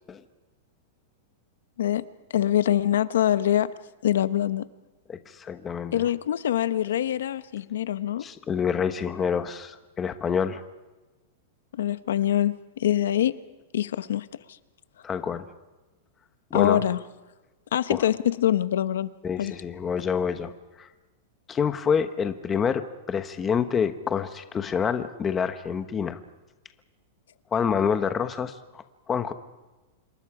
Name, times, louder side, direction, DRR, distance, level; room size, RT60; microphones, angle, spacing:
voice 1, 2.3-3.7 4.0-4.7 5.9-8.2 11.7-13.3 13.7-14.3 16.5-17.0 17.7-19.1 19.4-19.5, left 11 dB, 90° left, 13 dB, 0.9 m, -24 dB
voice 2, 5.1-6.1 8.2-10.6 15.0-15.5 16.5-16.8 17.9-18.0 19.2-20.5 20.8-20.9 21.5-26.2 27.5-29.3, left 7 dB, 15° left, 9 dB, 1.0 m, -27 dB
27.0 x 24.0 x 4.9 m, 1.1 s
supercardioid pair, 165°, 0 cm